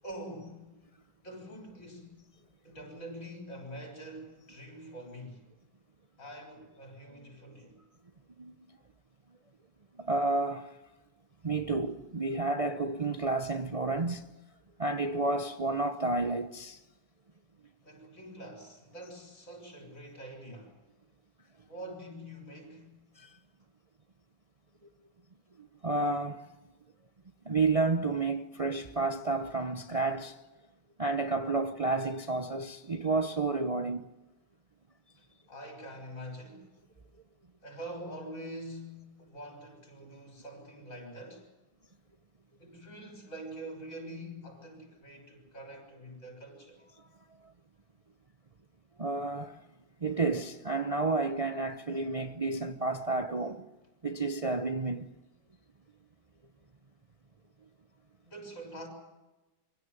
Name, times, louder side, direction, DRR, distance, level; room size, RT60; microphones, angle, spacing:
voice 1, 0.0-0.8 1.2-2.3 2.6-5.5 6.2-7.8 17.8-20.8 21.7-23.0 35.2-36.7 37.6-41.5 42.6-46.8 58.2-58.9, right 1 dB, 40° left, 6.7 m, -45 dB
voice 2, 10.0-10.8 11.4-14.2 14.8-16.8 23.2-23.4 25.6-26.5 27.4-30.4 31.0-34.1 49.0-49.6 50.0-53.6 54.0-55.1, right 3 dB, 70° right, 0.3 m, -31 dB
25.0 x 16.5 x 9.6 m
omnidirectional pair, 2.1 m